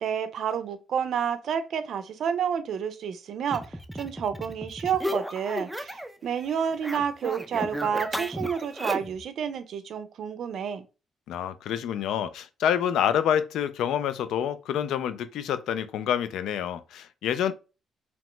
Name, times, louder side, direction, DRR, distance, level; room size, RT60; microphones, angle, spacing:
voice 1, 0.0-10.9, right 7 dB, 65° right, 0.4 m, -30 dB
sound 1, 3.5-6.2 6.4-9.2, equal, 5° right, 0.4 m, -34 dB
voice 2, 11.3-17.5, left 9 dB, 80° left, 0.3 m, -27 dB
2.8 x 2.1 x 3.0 m
cardioid pair, 90°, 0 cm